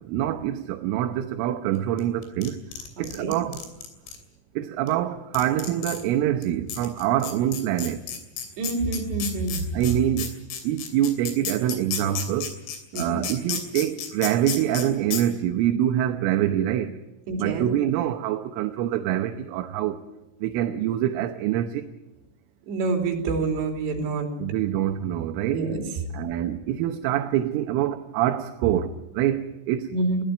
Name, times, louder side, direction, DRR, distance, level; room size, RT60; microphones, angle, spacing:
voice 1, 0.1-2.6 3.0-3.6 4.6-8.0 9.7-10.3 10.7-12.5 13.0-17.0 17.4-20.0 20.4-21.8 24.4-25.7 26.1-29.9, right 12 dB, 80° right, 3.4 m, -25 dB
sound 1, 2.0-4.2 4.9-5.0 5.3-6.0 6.4-6.5 6.7-14.8 15.1-15.2, left 8 dB, 70° left, 5.3 m, -32 dB
voice 2, 3.0-3.3 8.6-9.6 12.9-13.2 17.3-17.7 22.7-24.3 25.5-25.8 29.9-30.2, right 3 dB, 60° right, 5.1 m, -27 dB
21.5 x 16.5 x 9.2 m
omnidirectional pair, 5.9 m